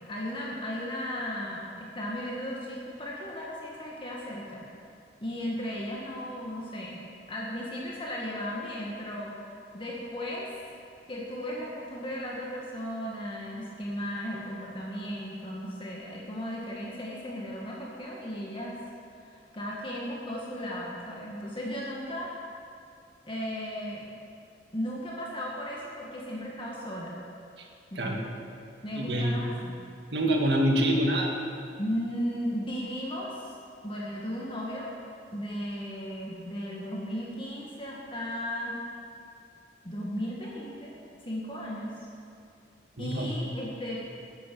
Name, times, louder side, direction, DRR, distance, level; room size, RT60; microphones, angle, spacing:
voice 1, 0.1-4.7 5.2-9.3 9.7-10.5 11.1-18.8 19.2-22.3 23.3-24.1 24.7-27.2 27.9-28.3 28.8-29.8 31.8-33.4 33.8-34.9 35.3-38.8 39.8-40.9 41.2-41.9 43.0-44.0, equal, 30° left, -4 dB, 1.9 m, -35 dB
voice 2, 29.0-29.5 30.1-31.3 43.0-43.3, right 1 dB, 70° right, 0 dB, 2.0 m, -25 dB
13.5 x 10.5 x 7.0 m, 2.5 s
head